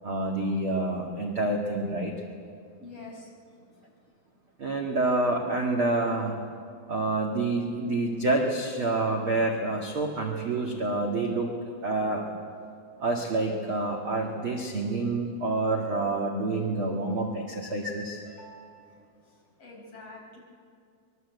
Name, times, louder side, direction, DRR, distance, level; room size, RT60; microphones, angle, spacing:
voice 1, 0.0-2.2 4.6-6.4 6.9-11.5 11.8-12.3 13.0-18.2, right 2 dB, 45° right, 0 dB, 1.8 m, -28 dB
voice 2, 2.8-3.3 18.2-18.9 19.6-20.4, left 2 dB, 35° left, -1 dB, 5.7 m, -46 dB
25.5 x 22.0 x 8.2 m, 2.4 s
omnidirectional pair, 5.2 m